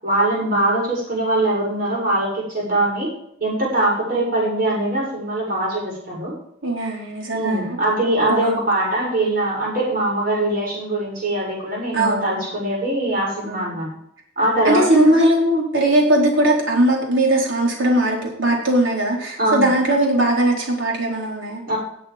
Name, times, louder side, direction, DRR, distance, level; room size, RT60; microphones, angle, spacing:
voice 1, 0.0-3.1 3.4-6.3 7.3-13.9 14.4-15.1 19.4-19.7 21.7-21.8, right 1 dB, 50° right, -3 dB, 6.7 m, -22 dB
voice 2, 6.6-7.8 8.2-8.7 11.9-12.5 13.4-13.8 14.6-21.6, right 1 dB, 75° right, -2 dB, 4.4 m, -19 dB
19.0 x 8.0 x 5.3 m, 0.73 s
head